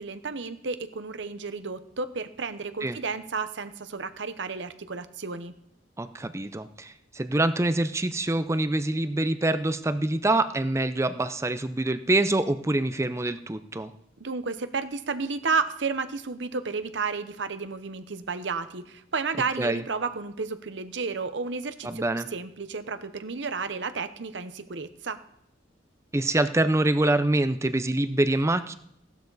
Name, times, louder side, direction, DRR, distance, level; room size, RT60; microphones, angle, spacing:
voice 1, 0.0-5.5 14.2-25.2, right 4 dB, 70° right, 11 dB, 0.9 m, -32 dB
voice 2, 6.0-13.9 19.6-19.8 21.8-22.3 26.1-28.7, right 2 dB, 15° right, 12 dB, 0.5 m, -25 dB
16.5 x 11.5 x 4.0 m, 0.75 s
head